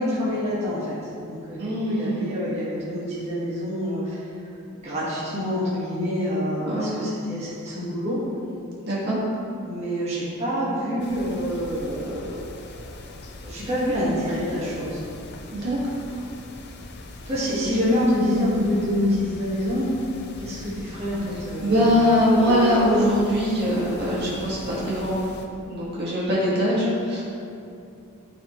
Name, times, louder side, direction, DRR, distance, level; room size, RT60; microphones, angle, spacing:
voice 1, 0.0-4.2 4.7-8.2 9.7-12.5 12.8-15.0 17.3-19.9 20.4-21.9, equal, 30° right, -10 dB, 1.8 m, -27 dB
voice 2, 1.6-2.4 6.6-7.1 8.9-9.2 15.5-15.8 21.6-25.2 25.7-27.2, equal, 50° right, -7 dB, 1.9 m, -22 dB
sound 1, 11.0-25.5, left 1 dB, 50° left, 0.6 m, -38 dB
13.0 x 4.7 x 3.2 m, 2.6 s
head